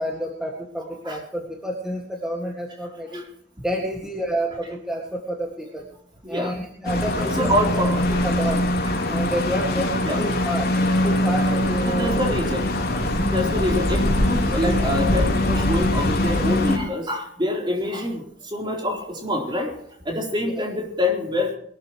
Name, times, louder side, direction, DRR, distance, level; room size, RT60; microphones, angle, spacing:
voice 1, 0.0-3.2 3.6-5.9 6.3-7.8 8.2-8.6 9.1-10.7 11.0-12.2 12.9-13.0 20.6-20.7, right 1 dB, 5° right, -1 dB, 2.1 m, -29 dB
voice 2, 6.2-6.6 7.2-8.1 9.1-9.3 10.1-10.2 11.9-12.7 13.3-19.8 20.0-21.5, left 1 dB, 25° right, 1 dB, 4.0 m, -26 dB
sound 1, 6.8-16.8, left 1 dB, 55° left, 3.7 m, -22 dB
22.0 x 13.0 x 3.2 m, 0.65 s
head